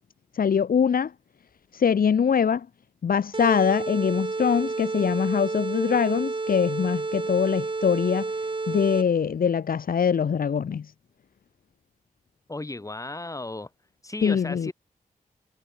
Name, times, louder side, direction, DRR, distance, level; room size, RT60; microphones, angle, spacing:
voice 1, 0.4-1.1 1.8-2.6 3.0-8.3 8.7-10.8 14.2-14.7, left 7 dB, 75° left, 1.5 m, -23 dB
sound 1, 3.3-9.3, right 3 dB, 35° right, 3.8 m, -30 dB
voice 2, 12.5-13.7 14.0-14.7, left 2 dB, 20° left, 6.3 m, -34 dB
wide cardioid pair, 110°, 15 cm